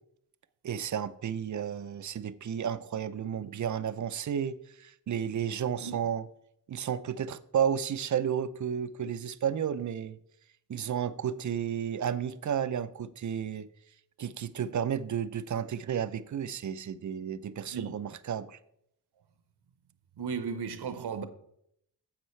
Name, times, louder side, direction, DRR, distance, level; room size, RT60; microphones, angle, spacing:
voice 1, 0.6-6.3 6.7-10.2 10.7-13.7 14.2-18.6, right 8 dB, 45° right, 0.5 m, -32 dB
voice 2, 20.2-21.2, right 6 dB, 70° right, 1.0 m, -35 dB
10.0 x 7.5 x 3.2 m
cardioid pair, 75°, 41 cm